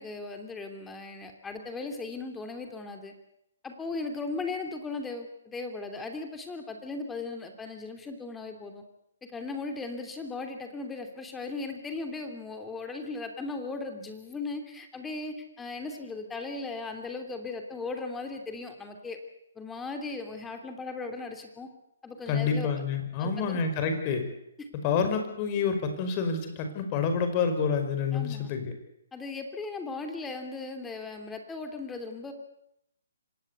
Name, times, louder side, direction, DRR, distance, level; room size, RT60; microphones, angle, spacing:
voice 1, 0.0-3.1 3.6-8.8 9.3-19.2 19.5-21.7 22.0-22.7 23.2-23.6 28.1-28.5 29.1-32.3, left 3 dB, 10° left, 5 dB, 3.0 m, -37 dB
voice 2, 22.3-24.2 24.8-28.7, left 5 dB, 30° left, 7 dB, 5.2 m, -28 dB
25.5 x 18.0 x 8.2 m, 0.81 s
hypercardioid pair, 145°, 0 cm